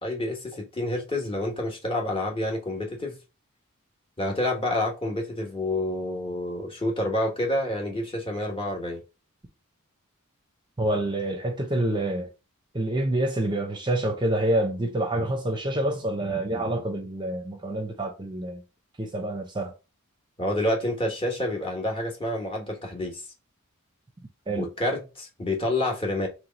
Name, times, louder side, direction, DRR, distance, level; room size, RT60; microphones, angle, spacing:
voice 1, 0.0-3.1 4.2-9.0 20.4-23.2 24.6-26.3, left 1 dB, 25° left, 1.3 m, -28 dB
voice 2, 10.8-12.3 12.7-18.6 19.0-19.7 24.5-24.7, right 1 dB, 20° right, 0.7 m, -27 dB
3.3 x 3.2 x 4.0 m
head